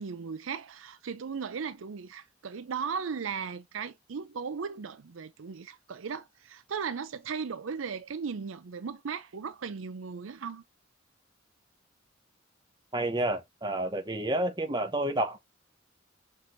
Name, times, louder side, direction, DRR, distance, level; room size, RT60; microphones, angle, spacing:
voice 1, 0.0-10.6, right 6 dB, 80° right, 0.5 m, -37 dB
voice 2, 12.9-15.4, right 1 dB, 20° right, 0.9 m, -29 dB
6.0 x 3.1 x 2.6 m
head